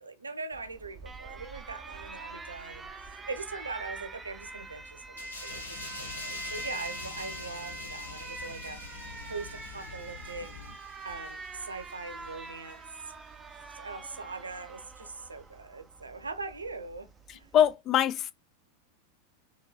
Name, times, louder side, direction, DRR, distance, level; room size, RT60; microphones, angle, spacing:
voice 1, 0.0-10.5 11.0-12.8 13.7-17.5, right 3 dB, 75° right, 0.7 m, -41 dB
Alarm, 0.5-17.7, right 3 dB, 15° right, 0.6 m, -45 dB
sound 1, 5.2-12.3 12.7-12.9, left 2 dB, 80° left, 1.5 m, -45 dB
sound 2, 5.5-10.8, left 7 dB, 60° left, 0.8 m, -48 dB
voice 2, 17.3-18.3, left 10 dB, 30° left, 0.5 m, -24 dB
4.3 x 3.0 x 4.0 m
figure-of-eight pair, 90°, 0 cm